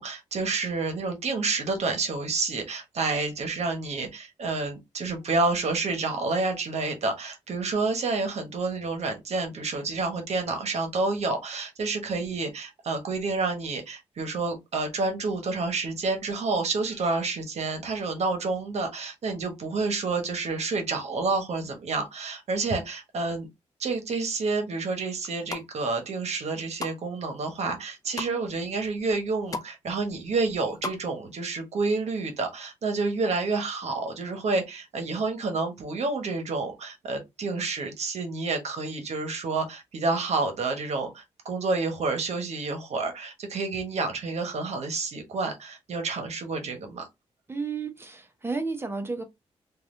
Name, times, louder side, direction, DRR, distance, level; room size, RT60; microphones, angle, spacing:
voice 1, 0.0-23.5 23.8-47.1, right 3 dB, 65° right, 1.0 m, -29 dB
sound 1, 25.2-25.7 26.2-27.0 27.4-28.3 28.9-29.0 29.2-29.7 30.0-31.0 31.3-31.4, left 3 dB, 30° left, 0.5 m, -36 dB
voice 2, 47.5-49.2, right 4 dB, 20° right, 0.8 m, -32 dB
3.2 x 2.4 x 2.5 m
cardioid pair, 80°, 12 cm